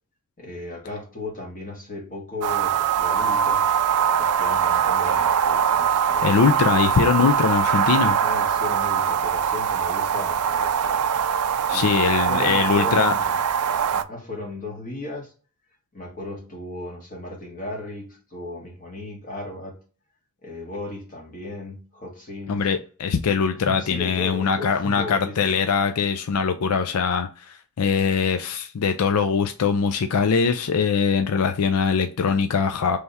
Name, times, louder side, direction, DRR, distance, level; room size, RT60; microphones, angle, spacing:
voice 1, 0.4-3.7 4.2-6.6 8.0-11.0 11.6-13.4 13.9-15.3 15.9-19.8 20.4-22.7 23.5-25.6, left 2 dB, 40° left, 1.7 m, -36 dB
sound 1, 2.4-14.0, right 8 dB, 80° right, 0.4 m, -22 dB
voice 2, 6.2-8.2 11.7-13.1 22.5-33.0, left 6 dB, 80° left, 0.4 m, -22 dB
3.4 x 3.3 x 4.1 m
head